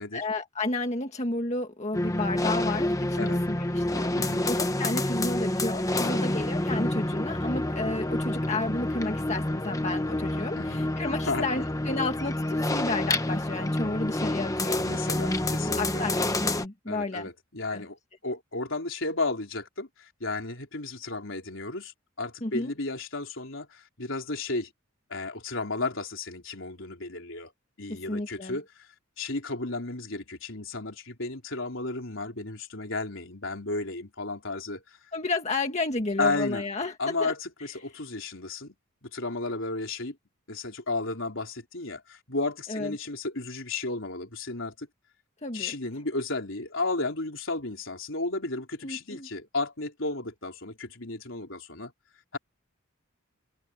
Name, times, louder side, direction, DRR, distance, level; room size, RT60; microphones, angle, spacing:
voice 1, 0.0-15.1 15.8-17.3 17.7-17.8 22.4-22.7 27.9-28.6 35.1-36.9 37.2-37.3 42.7-42.9 45.4-45.8 48.8-49.3, left 2 dB, 35° left, 1.8 m, -32 dB
sound 1, 1.9-16.7, left 1 dB, 15° left, 1.1 m, -28 dB
voice 2, 11.2-11.7 14.7-16.1 16.9-18.0 18.2-24.7 25.1-27.5 27.8-28.9 29.2-34.8 36.2-36.6 37.0-38.7 39.0-40.2 40.5-44.9 45.5-51.9 52.3-52.4, left 3 dB, 65° left, 4.4 m, -33 dB
head